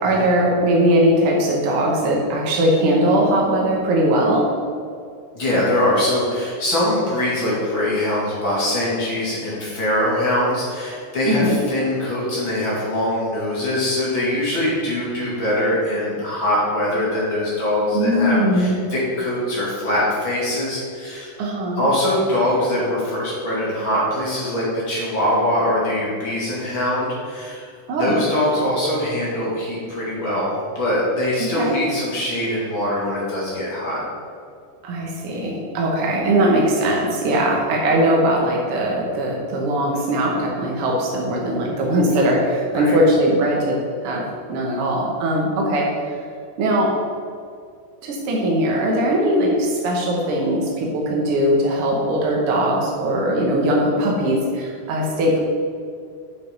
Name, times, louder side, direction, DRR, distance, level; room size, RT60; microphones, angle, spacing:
voice 1, 0.0-4.5 11.3-11.6 17.9-18.8 21.4-21.8 27.9-28.2 31.5-31.8 34.8-44.2 44.5-45.9 46.6-46.9 48.0-55.4, right 1 dB, 70° right, -2 dB, 1.3 m, -20 dB
voice 2, 5.3-21.3 21.8-27.7 28.0-34.0 42.7-42.9, left 1 dB, 35° left, -7 dB, 2.7 m, -22 dB
8.4 x 5.6 x 5.3 m, 2.2 s
omnidirectional pair, 4.2 m